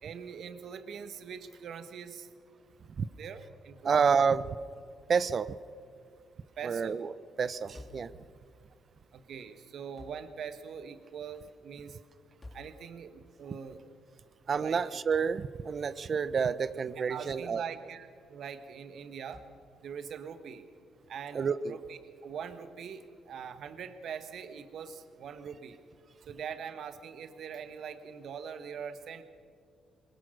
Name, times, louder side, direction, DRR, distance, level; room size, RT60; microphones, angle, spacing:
voice 1, 0.0-2.3 3.2-4.0 6.6-7.0 9.1-12.0 12.5-13.8 14.5-14.8 17.0-19.4 19.8-20.6 21.1-25.8 26.3-29.2, right 7 dB, 65° right, 10 dB, 1.4 m, -42 dB
voice 2, 3.8-4.5 5.1-5.6 6.6-7.1 7.4-8.1 14.5-17.6 21.3-21.8, right 6 dB, 45° right, 16 dB, 0.6 m, -29 dB
sound 1, 7.7-8.2 10.0-10.3 12.4-12.8 15.1-15.4 17.3-17.5 19.3-19.6, left 2 dB, 25° left, 3.3 m, -50 dB
22.0 x 20.0 x 6.5 m, 2.2 s
cardioid pair, 90°, 0 cm